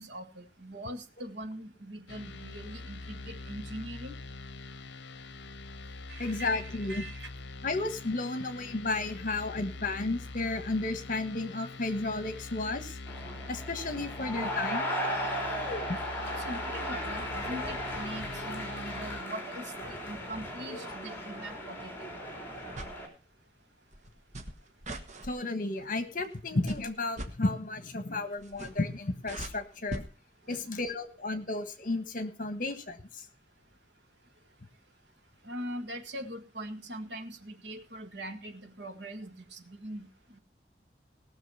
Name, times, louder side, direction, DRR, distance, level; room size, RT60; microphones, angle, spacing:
voice 1, 0.0-4.2 6.1-7.3 16.5-21.9 30.5-30.6 35.5-40.1, equal, 65° right, 6 dB, 1.8 m, -42 dB
sound 1, 2.1-19.2, left 3 dB, 75° left, 0.7 m, -44 dB
voice 2, 6.2-7.0 7.6-13.0 13.5-14.9 15.9-16.0 25.2-30.0 30.5-33.2, left 2 dB, 50° left, 10 dB, 1.4 m, -33 dB
sound 2, 13.1-23.1, equal, 10° left, 3.5 m, -36 dB
sound 3, 22.6-23.0 23.9-25.3 26.2-26.4 26.7-27.3 28.4-28.9 29.2-30.1 30.8-30.9, right 1 dB, 40° right, 1.4 m, -40 dB
18.0 x 6.6 x 5.6 m, 0.36 s
head